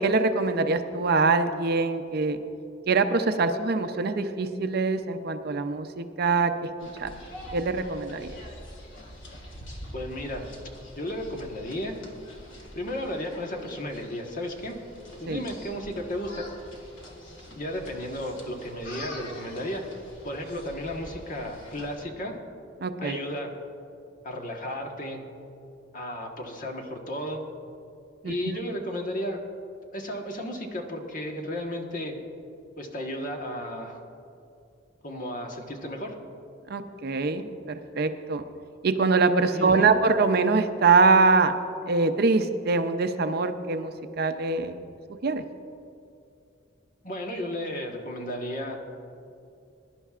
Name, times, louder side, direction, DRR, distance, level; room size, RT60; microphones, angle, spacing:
voice 1, 0.0-2.4 2.9-6.5 7.0-7.1 7.5-8.3 15.3-15.4 22.8-23.2 28.2-28.3 36.7-38.4 38.8-41.5 41.9-44.7 45.2-45.4, right 4 dB, 55° right, 8 dB, 0.6 m, -23 dB
sound 1, 6.8-22.0, equal, 75° left, 2.0 m, -45 dB
voice 2, 9.9-10.4 11.0-11.9 12.7-14.7 15.2-16.5 17.5-19.8 20.2-22.3 23.0-23.5 24.2-25.2 25.9-27.4 28.2-29.4 29.9-32.2 32.8-34.0 35.0-36.2 39.5-39.9 47.0-48.8, equal, 45° left, 2 dB, 1.3 m, -34 dB
22.0 x 11.0 x 2.4 m, 2.6 s
head